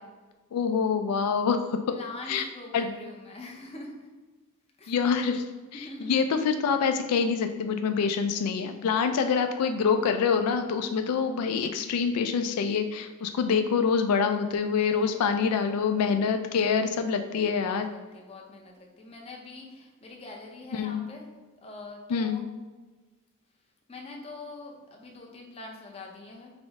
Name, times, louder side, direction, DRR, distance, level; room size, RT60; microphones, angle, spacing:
voice 1, 0.5-1.8 2.3-2.4 2.7-2.9 4.9-5.4 6.0-17.9 20.7-21.0 22.1-22.4, left 6 dB, 90° left, 7 dB, 0.3 m, -26 dB
voice 2, 1.9-4.1 4.8-4.9 5.7-6.1 10.9-11.1 14.9-15.3 17.4-21.3 21.6-22.4 23.9-26.5, left 2 dB, 25° left, 0 dB, 0.6 m, -44 dB
5.1 x 2.1 x 3.5 m, 1.3 s
head